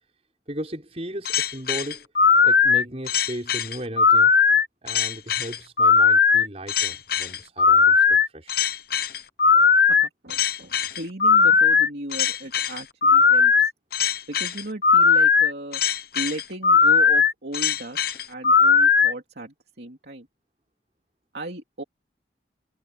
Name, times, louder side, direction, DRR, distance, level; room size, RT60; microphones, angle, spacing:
voice 1, 0.5-2.1 2.4-4.3 4.8-8.6, equal, 35° right, 6.0 m, -36 dB
sound 1, 1.2-19.1, left 5 dB, 55° left, 0.9 m, -18 dB
voice 2, 9.9-13.7 14.3-15.8 16.1-20.3 21.3-21.8, right 1 dB, 65° right, 2.8 m, -36 dB
head